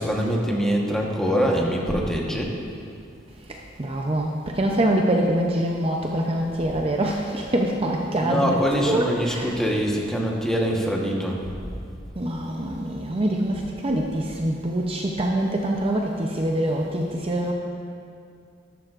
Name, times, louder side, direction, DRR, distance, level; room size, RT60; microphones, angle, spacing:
voice 1, 0.0-2.6 8.2-11.4, equal, 5° left, -2 dB, 1.2 m, -24 dB
voice 2, 3.5-9.7 12.2-17.5, right 1 dB, 30° right, 1 dB, 0.6 m, -25 dB
12.5 x 12.0 x 2.5 m, 2.4 s
head